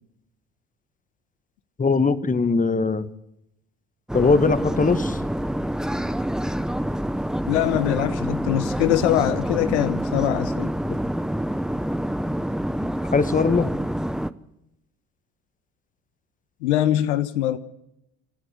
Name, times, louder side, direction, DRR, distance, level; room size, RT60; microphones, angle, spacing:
voice 1, 1.8-3.1 4.1-5.3 10.9-11.0 13.1-13.7, left 4 dB, 25° left, 1.5 m, -20 dB
sound 1, 4.1-14.3, equal, ahead, 0.9 m, -27 dB
voice 2, 7.5-10.7 16.6-17.6, left 13 dB, 80° left, 1.1 m, -23 dB
27.5 x 12.5 x 8.1 m
hypercardioid pair, 65°, 34 cm